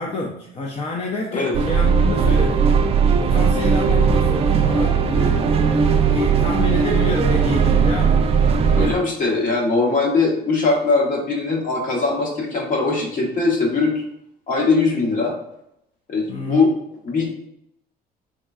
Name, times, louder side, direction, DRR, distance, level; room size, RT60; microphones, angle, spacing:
voice 1, 0.0-2.7 3.2-5.8 6.1-8.2 8.7-9.0 16.3-16.7, left 3 dB, 35° left, -1 dB, 0.5 m, -28 dB
sound 1, 1.5-9.0, right 6 dB, 35° right, 0.4 m, -18 dB
voice 2, 8.8-14.0 14.5-15.4 16.1-16.7 17.0-17.3, left 3 dB, 50° left, -1 dB, 1.2 m, -20 dB
3.6 x 3.1 x 2.4 m, 0.76 s
cardioid pair, 110°, 17 cm